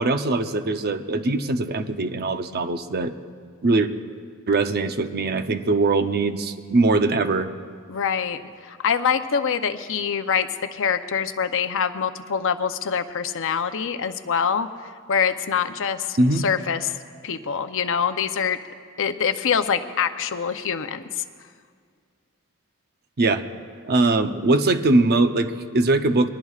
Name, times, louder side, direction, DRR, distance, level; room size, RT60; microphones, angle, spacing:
voice 1, 0.0-3.1 3.6-3.9 4.5-7.5 16.2-16.4 23.2-23.4 23.8-26.3, right 2 dB, 50° right, 8 dB, 0.7 m, -21 dB
voice 2, 7.9-8.4 8.7-14.7 15.1-16.2 16.4-16.9 17.2-18.6 19.0-21.0, left 7 dB, 65° left, 9 dB, 0.7 m, -24 dB
23.0 x 19.0 x 2.4 m, 2.1 s
head